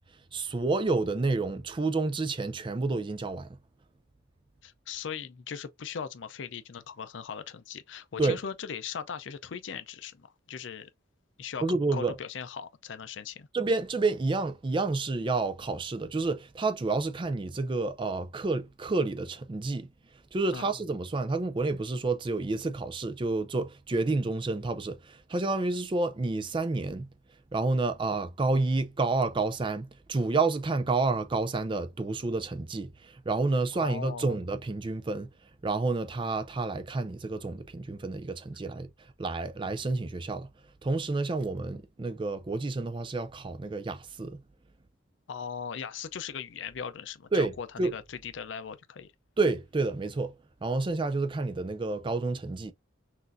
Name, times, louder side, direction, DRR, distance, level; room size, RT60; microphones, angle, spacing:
voice 1, 0.3-3.5 8.2-8.4 11.6-12.1 13.5-19.9 20.3-27.1 27.5-35.3 35.6-38.9 39.2-40.5 40.8-44.4 47.3-47.5 47.8-47.9 49.4-50.3 50.6-52.7, right 3 dB, 25° right, 0.4 m, -29 dB
voice 2, 4.6-10.9 11.4-11.6 11.9-13.5 20.5-20.7 33.7-34.4 45.3-49.1, left 7 dB, 70° left, 0.5 m, -39 dB
6.0 x 2.5 x 2.5 m
head